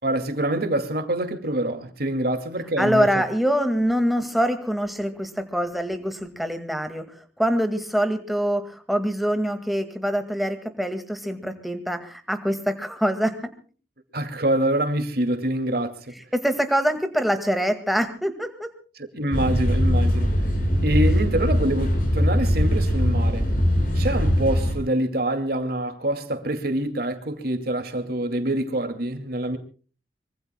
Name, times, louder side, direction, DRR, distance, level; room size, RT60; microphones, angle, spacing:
voice 1, 0.0-3.1 14.1-15.9 19.1-20.3 20.8-23.5 23.9-29.6, right 1 dB, 60° right, 2.5 m, -25 dB
voice 2, 2.8-13.5 16.1-18.7, equal, ahead, 2.1 m, -24 dB
sound 1, 19.3-24.7, equal, 50° left, 5.8 m, -21 dB
25.0 x 24.5 x 2.3 m
head